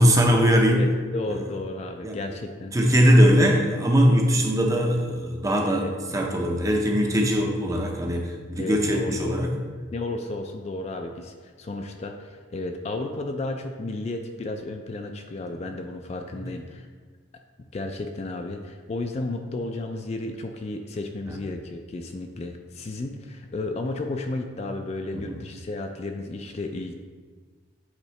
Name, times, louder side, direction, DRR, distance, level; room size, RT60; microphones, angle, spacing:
voice 1, 0.0-0.9 1.3-1.4 2.0-2.2 2.7-5.9 6.1-9.5 21.3-21.4 25.1-25.3, equal, 15° right, 2 dB, 0.6 m, -20 dB
voice 2, 0.7-2.8 5.7-6.3 7.4-7.5 8.6-9.5 9.9-16.9 17.6-26.9, left 2 dB, 35° left, 4 dB, 0.3 m, -33 dB
8.1 x 3.7 x 3.2 m, 1.5 s
head